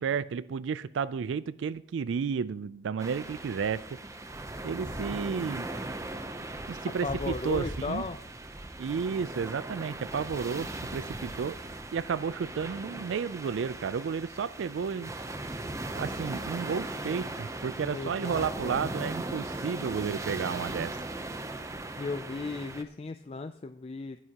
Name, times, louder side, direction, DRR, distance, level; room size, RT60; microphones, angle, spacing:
voice 1, 0.0-4.0 4.6-5.7 6.7-8.1 8.8-11.6 11.9-15.1 15.9-21.0, right 6 dB, 75° right, 17 dB, 0.4 m, -32 dB
sound 1, 3.0-22.8, right 2 dB, 15° right, 0.6 m, -38 dB
voice 2, 7.0-8.2 17.8-18.9 22.0-24.2, left 3 dB, 30° left, 10 dB, 0.3 m, -36 dB
19.0 x 9.6 x 2.9 m, 0.73 s
head